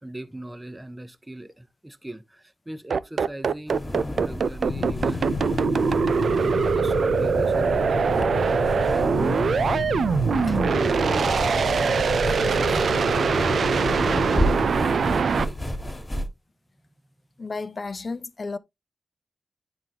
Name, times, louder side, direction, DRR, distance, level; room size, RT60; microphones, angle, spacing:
voice 1, 0.0-3.9 4.2-5.3 6.0-15.6, right 1 dB, 15° right, 0.7 m, -40 dB
sound 1, 2.9-15.4, right 5 dB, 80° right, 0.4 m, -23 dB
sound 2, 3.7-16.3, equal, 20° left, 1.5 m, -32 dB
sound 3, 4.7-14.7, left 5 dB, 90° left, 0.4 m, -31 dB
voice 2, 17.4-18.6, left 3 dB, 45° left, 0.5 m, -32 dB
10.5 x 3.8 x 2.8 m
wide cardioid pair, 130°, 0 cm